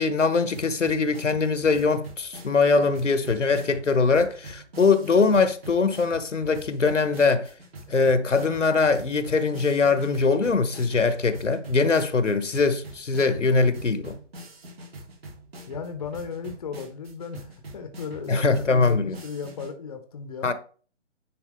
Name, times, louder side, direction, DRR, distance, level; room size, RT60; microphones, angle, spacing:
voice 1, 0.0-7.5 7.9-14.2 18.3-19.2 20.4-20.5, left 4 dB, 85° left, 1.2 m, -22 dB
sound 1, 0.5-19.7, right 1 dB, 55° right, 3.2 m, -44 dB
voice 2, 15.7-20.5, left 6 dB, 30° left, 0.9 m, -36 dB
10.0 x 4.8 x 3.5 m
figure-of-eight pair, 150°, 36 cm